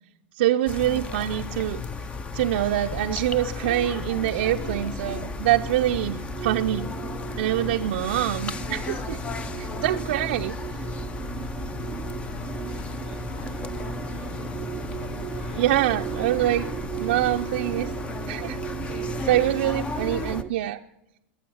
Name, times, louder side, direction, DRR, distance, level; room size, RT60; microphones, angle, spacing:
voice 1, 0.4-1.8 2.3-6.9 7.4-9.2 9.6-10.9 15.6-16.7 17.0-17.9 18.3-18.6 18.9-20.8, right 13 dB, 70° right, 4 dB, 0.6 m, -25 dB
sound 1, 0.7-20.4, left 5 dB, 20° left, 0.7 m, -34 dB
sound 2, 4.5-20.5, right 10 dB, 25° right, 0.4 m, -36 dB
voice 2, 12.1-14.4 14.9-15.7 16.1-16.2 19.2-19.7, left 2 dB, 75° left, -2 dB, 5.7 m, -50 dB
21.5 x 7.8 x 7.1 m, 0.86 s
supercardioid pair, 135°, 6 cm